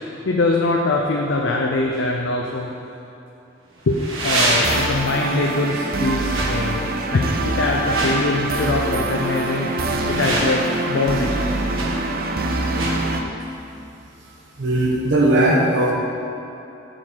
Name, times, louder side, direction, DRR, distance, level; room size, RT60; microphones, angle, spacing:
voice 1, 0.3-2.7 3.9-9.7 10.1-11.3, left 2 dB, 65° left, 0 dB, 0.5 m, -22 dB
sound 1, 1.9-2.0 3.8-5.0 6.2-6.5 7.7-8.2 9.8-10.8 11.7-11.9 12.7-13.0, right 2 dB, 85° right, 1.5 m, -24 dB
sound 2, 4.3-13.2, right 2 dB, 50° right, 0.6 m, -24 dB
voice 2, 14.6-15.9, right 1 dB, 65° right, -2 dB, 1.0 m, -18 dB
6.6 x 5.9 x 4.5 m, 2.9 s
head